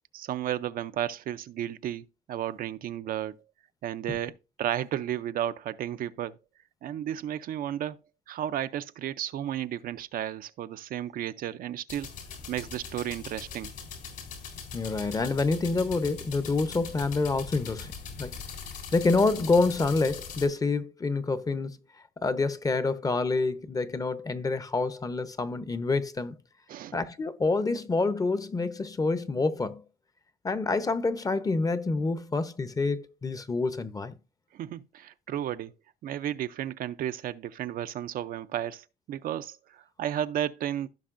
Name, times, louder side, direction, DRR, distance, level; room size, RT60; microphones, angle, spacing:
voice 1, 0.1-3.4 3.8-4.3 4.6-6.4 6.8-8.0 8.3-12.1 12.5-13.7 26.7-27.0 34.5-35.7 36.0-40.9, right 11 dB, 60° right, 0.5 m, -33 dB
sound 1, 11.9-20.5, left 6 dB, 70° left, 3.8 m, -41 dB
voice 2, 14.7-17.9 18.2-18.4 18.9-21.8 22.2-26.3 26.9-29.8 30.4-34.1, left 3 dB, 20° left, 0.7 m, -27 dB
16.0 x 5.3 x 2.5 m
cardioid pair, 110°, 17 cm